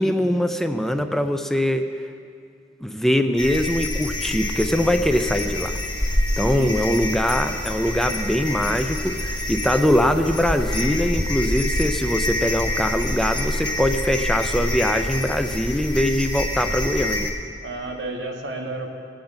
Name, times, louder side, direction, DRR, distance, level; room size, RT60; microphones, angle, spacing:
voice 1, 0.0-1.9 2.8-5.8 6.4-17.3, equal, ahead, 7 dB, 0.4 m, -22 dB
sound 1, 3.4-17.3, left 1 dB, 25° left, 1.2 m, -26 dB
voice 2, 6.5-7.0 17.6-18.9, right 1 dB, 85° right, 2 dB, 1.4 m, -31 dB
19.5 x 8.7 x 3.9 m, 2.3 s
head